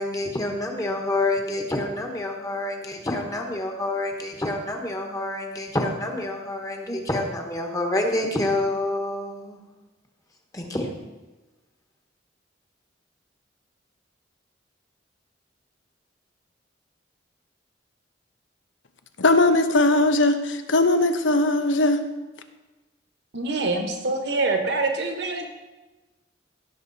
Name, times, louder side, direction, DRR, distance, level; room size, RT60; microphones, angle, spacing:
voice 1, 0.0-9.6 10.5-10.9, left 2 dB, 20° left, 2 dB, 1.3 m, -27 dB
voice 2, 19.2-22.0, left 2 dB, 85° left, 8 dB, 1.0 m, -19 dB
voice 3, 23.3-25.5, right 3 dB, 65° right, 4 dB, 1.5 m, -25 dB
16.5 x 6.9 x 4.2 m, 1.1 s
head